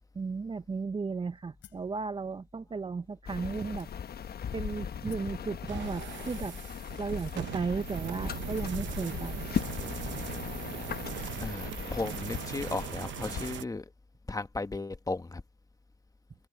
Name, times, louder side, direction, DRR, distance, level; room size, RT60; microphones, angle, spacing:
voice 1, 0.1-3.9 4.5-6.6 7.0-9.5, right 4 dB, 25° right, 0.7 m, -35 dB
sound 1, 1.6-2.0 2.7-2.8 3.8-4.3 5.1-5.4 6.4-6.5 7.3-7.8 8.5-8.9, left 12 dB, 75° left, 3.2 m, -56 dB
sound 2, 3.3-13.5, left 8 dB, 50° left, 1.2 m, -38 dB
sound 3, 5.7-13.6, right 12 dB, 70° right, 0.9 m, -40 dB
voice 2, 11.4-13.8 14.3-15.4, left 3 dB, 15° left, 1.4 m, -35 dB
cardioid pair, 90°, 20 cm